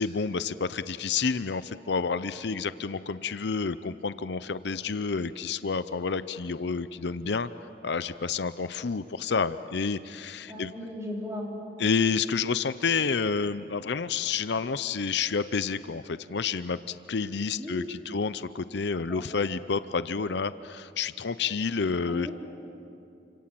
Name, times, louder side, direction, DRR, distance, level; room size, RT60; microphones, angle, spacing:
voice 1, 0.0-7.5 7.8-10.7 11.8-22.3, left 5 dB, 65° left, 13 dB, 0.6 m, -29 dB
voice 2, 10.5-11.6 17.5-18.1 19.1-19.2 22.1-22.3, left 1 dB, 15° right, -2 dB, 4.5 m, -37 dB
29.0 x 26.5 x 7.7 m, 2.7 s
head